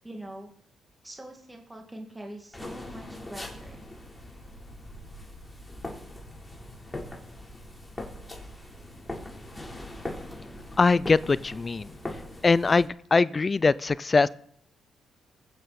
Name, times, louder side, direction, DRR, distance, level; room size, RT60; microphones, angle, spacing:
voice 1, 0.0-0.5 1.0-3.9, right 1 dB, 10° right, 1 dB, 2.1 m, -43 dB
sound 1, 2.5-12.9, left 1 dB, 10° left, 3.7 m, -41 dB
voice 2, 10.8-11.9 12.4-14.3, left 4 dB, 30° left, 19 dB, 0.4 m, -22 dB
21.0 x 9.2 x 4.2 m, 0.64 s
cardioid pair, 90°, 0 cm